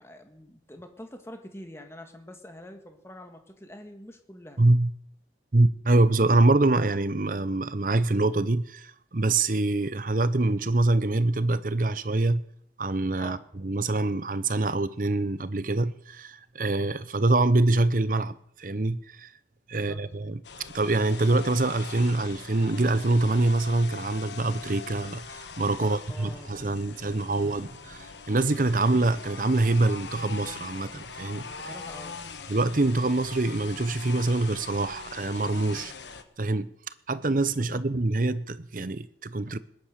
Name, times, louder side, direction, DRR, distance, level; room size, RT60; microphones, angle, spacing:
voice 1, 0.0-4.6 13.2-13.4 19.7-20.0 25.7-26.5 26.8-27.4 31.5-32.2 37.6-37.8, left 1 dB, 15° left, 1.8 m, -45 dB
voice 2, 4.6-4.9 5.5-12.4 12.8-19.3 19.7-20.4 20.7-31.5 32.5-35.9 36.4-36.7 37.1-39.6, right 2 dB, 45° right, 0.8 m, -25 dB
sound 1, 20.4-36.2, left 5 dB, 75° left, 1.3 m, -42 dB
20.0 x 10.5 x 6.6 m
head